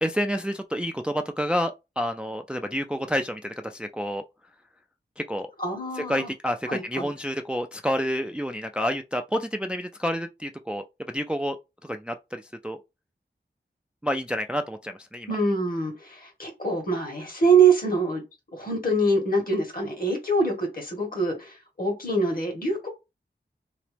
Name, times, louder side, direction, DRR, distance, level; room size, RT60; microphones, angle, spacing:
voice 1, 0.0-4.2 5.2-5.5 5.9-11.6 11.8-12.8 14.0-15.3, equal, 5° right, 0.3 m, -29 dB
voice 2, 5.6-6.3 6.7-7.1 15.3-18.2 18.5-22.9, right 3 dB, 50° left, 1.5 m, -24 dB
3.0 x 2.9 x 3.3 m
wide cardioid pair, 60°, 19 cm